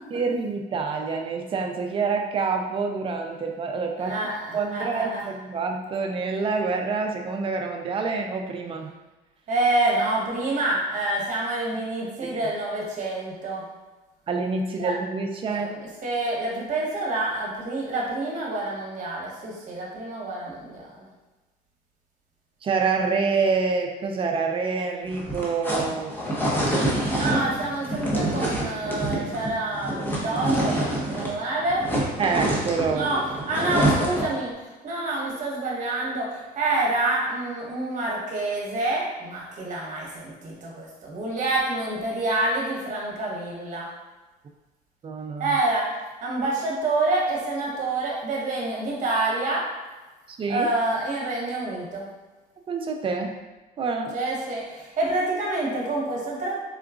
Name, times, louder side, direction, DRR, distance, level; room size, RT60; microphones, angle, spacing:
voice 1, 0.1-4.2 4.5-8.9 12.2-12.4 14.3-15.7 22.6-26.6 32.2-33.1 45.0-45.6 50.3-50.7 52.7-53.3 53.8-54.1, right 4 dB, 30° right, 3 dB, 0.4 m, -27 dB
voice 2, 4.0-5.2 9.5-13.6 14.8-14.9 15.4-21.1 27.1-30.8 31.1-31.9 32.9-33.2 33.5-34.5 34.8-43.9 45.4-45.9 46.2-49.6 50.5-52.0 54.1-56.6, right 2 dB, 50° right, -3 dB, 1.0 m, -27 dB
sound 1, 25.1-31.4 31.6-34.4, right 1 dB, 10° left, 0.7 m, -26 dB
3.7 x 2.3 x 2.4 m, 1.2 s
cardioid pair, 110°, 17 cm